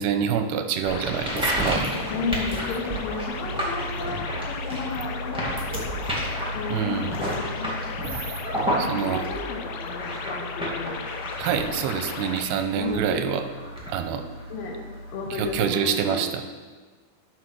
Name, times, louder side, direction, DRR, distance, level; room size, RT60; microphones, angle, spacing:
voice 1, 0.0-1.9 6.7-7.1 8.8-9.3 11.4-13.4 13.9-14.2 15.3-16.4, right 8 dB, 90° right, 8 dB, 2.6 m, -26 dB
sound 1, 0.8-12.5, left 6 dB, 85° left, 1.9 m, -36 dB
sound 2, 0.9-15.5, right 1 dB, 5° right, 0.5 m, -31 dB
voice 2, 2.1-5.9 6.5-7.7 8.9-11.0 12.8-13.2 14.5-14.8 15.1-16.3, left 4 dB, 70° left, 1 dB, 2.6 m, -33 dB
12.0 x 5.0 x 6.2 m, 1.4 s
omnidirectional pair, 4.5 m